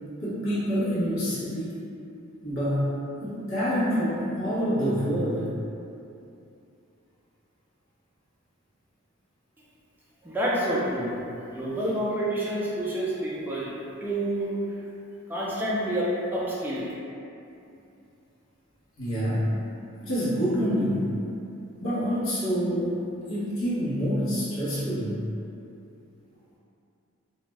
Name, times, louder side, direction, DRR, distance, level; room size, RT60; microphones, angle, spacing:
voice 1, 0.2-1.8 2.4-2.9 3.2-5.5 19.0-19.5 20.0-21.1 21.8-23.0 23.3-25.2, equal, 75° left, -10 dB, 1.1 m, -27 dB
voice 2, 10.2-11.2 11.5-14.6 15.3-16.9, right 1 dB, 10° right, -7 dB, 0.3 m, -28 dB
2.5 x 2.2 x 3.1 m, 2.7 s
head